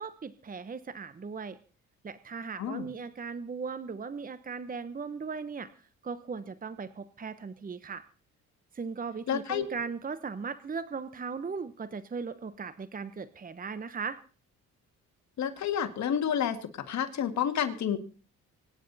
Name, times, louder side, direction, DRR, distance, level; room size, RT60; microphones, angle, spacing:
voice 1, 0.0-1.6 2.0-8.0 8.7-14.2, right 5 dB, 30° right, 13 dB, 1.0 m, -38 dB
voice 2, 9.3-9.7 15.4-18.0, left 9 dB, 65° left, 8 dB, 2.1 m, -30 dB
25.0 x 10.0 x 4.2 m, 0.37 s
cardioid pair, 90°, 30 cm